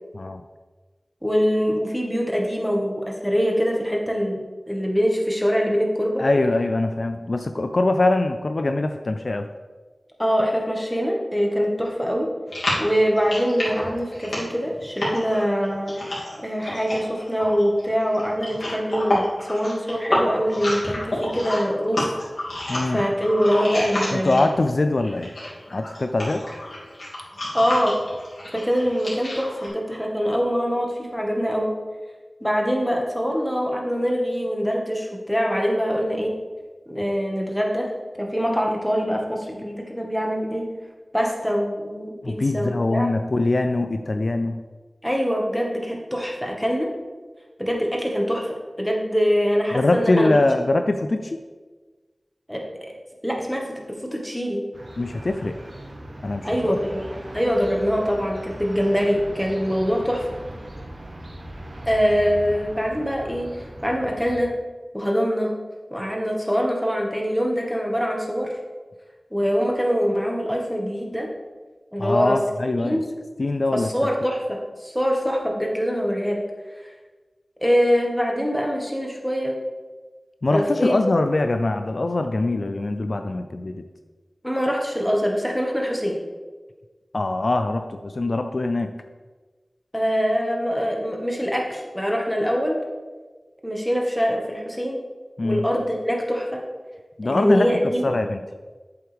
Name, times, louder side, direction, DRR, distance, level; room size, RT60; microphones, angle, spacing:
voice 1, 1.2-4.4 4.7-6.2 10.2-12.3 12.8-22.0 22.9-24.4 27.5-27.9 28.5-31.7 32.4-36.3 36.9-37.9 38.2-40.6 41.1-43.1 45.0-46.9 47.6-50.4 52.5-52.9 53.2-54.6 56.4-57.1 57.3-60.3 61.8-63.5 63.8-64.5 64.9-65.5 65.9-68.5 69.3-71.3 71.9-72.4 72.8-73.0 73.7-76.4 77.6-79.6 80.5-81.0 84.4-86.2 89.9-92.7 93.6-95.0 95.4-96.6 97.2-98.0, equal, 5° left, 0 dB, 1.6 m, -24 dB
voice 2, 6.2-9.5 22.7-23.0 24.1-25.3 25.7-26.4 42.2-44.6 49.7-51.4 55.0-55.6 56.2-56.8 72.0-73.0 73.4-73.9 80.4-83.9 87.1-88.9 95.4-95.6 97.2-97.7 98.0-98.4, left 2 dB, 60° left, 7 dB, 0.4 m, -23 dB
sound 1, 12.5-24.7 25.0-29.7, left 1 dB, 75° left, 2.7 m, -29 dB
sound 2, 54.7-64.4, right 1 dB, 70° right, 1.1 m, -39 dB
8.0 x 7.8 x 3.5 m, 1.3 s
wide cardioid pair, 70°, 0 cm